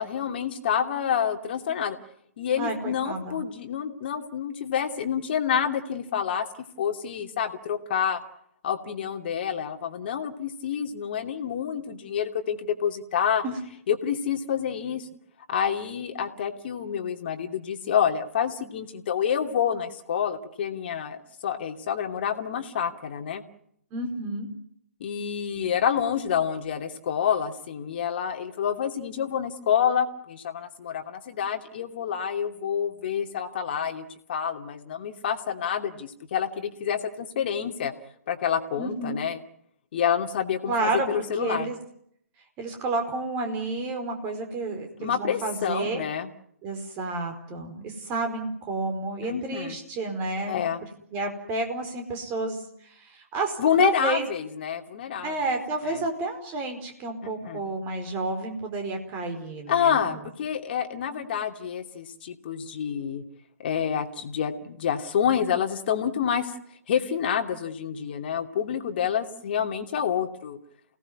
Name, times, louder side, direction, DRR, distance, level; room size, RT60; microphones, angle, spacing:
voice 1, 0.0-2.0 2.4-6.5 6.8-8.2 8.6-13.4 13.9-15.1 15.5-23.4 25.0-37.9 38.3-39.4 39.9-41.7 45.0-46.3 49.2-49.8 50.5-50.8 53.6-55.3 55.8-56.0 57.2-57.6 59.7-63.2 63.6-66.5 66.9-70.6, left 8 dB, 40° left, 5 dB, 2.7 m, -28 dB
voice 2, 2.6-3.4 13.4-13.5 23.9-24.5 38.8-39.2 40.7-41.8 42.6-46.0 46.6-50.6 51.1-54.3 55.2-60.2, right 3 dB, 20° right, 5 dB, 4.7 m, -30 dB
29.0 x 18.0 x 9.6 m, 0.73 s
figure-of-eight pair, 130°, 8 cm